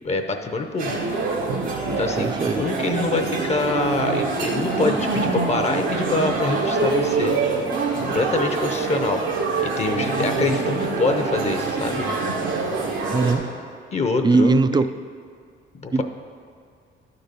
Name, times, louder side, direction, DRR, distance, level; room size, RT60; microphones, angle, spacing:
voice 1, 0.0-1.0 1.9-7.4 7.9-9.2 9.6-12.1 13.9-14.8 15.8-16.0, left 3 dB, 35° left, 5 dB, 0.7 m, -25 dB
sound 1, 0.8-13.3, right 3 dB, 90° right, 1.4 m, -25 dB
voice 2, 2.2-2.7 13.1-13.5 14.2-14.9 15.9-16.0, right 3 dB, 20° right, 12 dB, 0.3 m, -19 dB
11.5 x 4.0 x 6.8 m, 2.2 s
cardioid pair, 90°, 20 cm